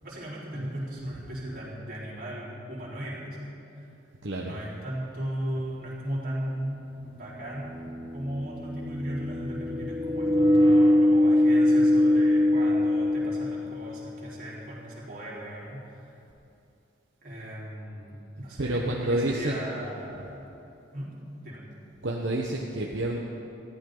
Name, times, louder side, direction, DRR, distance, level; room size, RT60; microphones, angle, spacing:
voice 1, 0.0-3.6 4.4-7.7 8.1-16.0 17.2-20.4 20.9-21.1 21.4-21.6, equal, 45° right, -6 dB, 4.3 m, -37 dB
voice 2, 4.2-4.6 18.4-19.6 20.1-20.3 22.0-23.2, right 1 dB, 70° right, -2 dB, 1.2 m, -29 dB
sound 1, 5.6-5.7 7.2-14.0, left 1 dB, 25° right, 1.3 m, -23 dB
20.0 x 14.5 x 4.0 m, 2.9 s
head